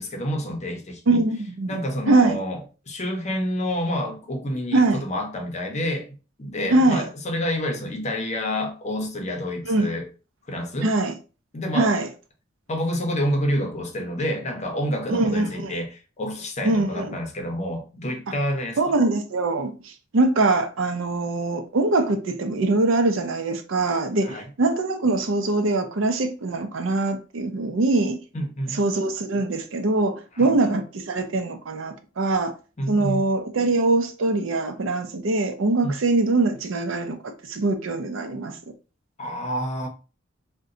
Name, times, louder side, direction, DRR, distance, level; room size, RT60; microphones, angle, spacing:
voice 1, 0.0-1.2 1.7-2.6 2.9-6.1 6.4-10.1 10.5-10.9 11.5-11.9 12.7-18.9 24.2-24.5 28.3-28.8 30.4-30.6 32.8-33.2 35.8-36.0 39.2-39.9, equal, 35° left, 0.6 m, -28 dB
voice 2, 1.1-1.8 2.1-2.4 4.7-5.0 6.7-7.0 9.6-9.9 10.8-11.1 11.7-12.1 15.1-15.7 16.6-17.1 18.8-28.2 28.7-32.5 32.9-38.6, right 2 dB, 75° right, 0.5 m, -23 dB
2.6 x 2.2 x 3.7 m
head